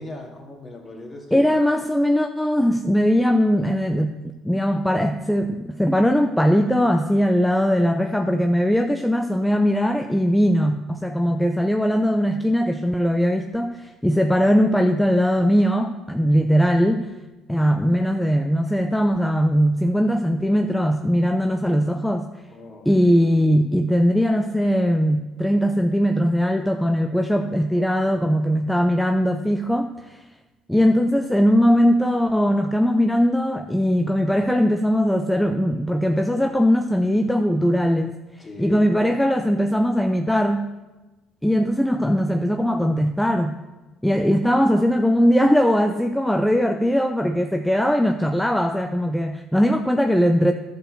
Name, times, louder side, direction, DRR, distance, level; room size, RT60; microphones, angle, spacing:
voice 1, 0.0-1.5 22.5-22.9 38.4-38.9, left 2 dB, 30° left, 0 dB, 2.6 m, -37 dB
voice 2, 1.3-17.1 17.5-22.3 22.9-30.2 30.7-38.2 38.6-40.7 41.4-43.6 44.0-50.5, equal, 5° left, 6 dB, 0.6 m, -20 dB
11.0 x 5.3 x 6.5 m, 1.1 s
hypercardioid pair, 60°, 0 cm